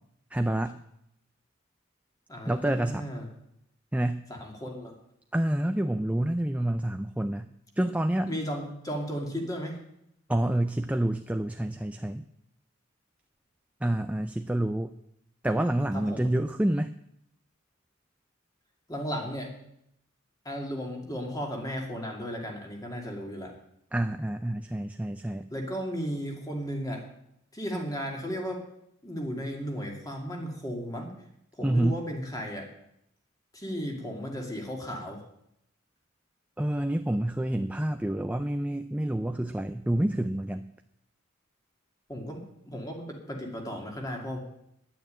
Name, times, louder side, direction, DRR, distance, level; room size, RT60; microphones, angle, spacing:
voice 1, 0.3-0.8 2.5-3.0 3.9-4.3 5.3-7.5 7.8-8.3 10.3-12.2 13.8-14.9 15.4-16.9 23.9-25.4 31.6-32.0 36.6-40.7, right 1 dB, 5° right, 8 dB, 0.4 m, -28 dB
voice 2, 2.3-3.3 4.3-4.9 8.3-9.8 15.9-16.3 18.9-19.5 20.4-23.5 25.5-27.0 27.5-28.6 29.0-31.1 31.6-32.7 33.5-35.2 42.1-44.4, equal, 15° left, 1 dB, 2.5 m, -35 dB
10.5 x 9.2 x 8.9 m, 0.77 s
head